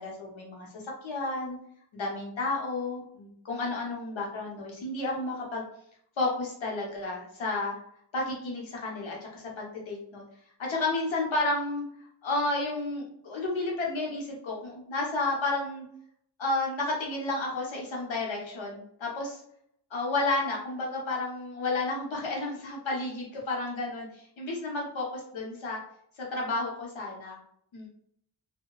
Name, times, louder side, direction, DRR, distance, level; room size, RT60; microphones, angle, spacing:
voice 1, 0.0-1.6 1.9-5.6 6.2-7.7 8.1-10.2 10.6-11.8 12.2-15.8 16.4-19.4 19.9-25.8 26.2-27.4 27.7-27.9, left 2 dB, 90° left, -2 dB, 0.9 m, -31 dB
2.8 x 2.1 x 2.2 m, 0.68 s
wide cardioid pair, 135°, 45 cm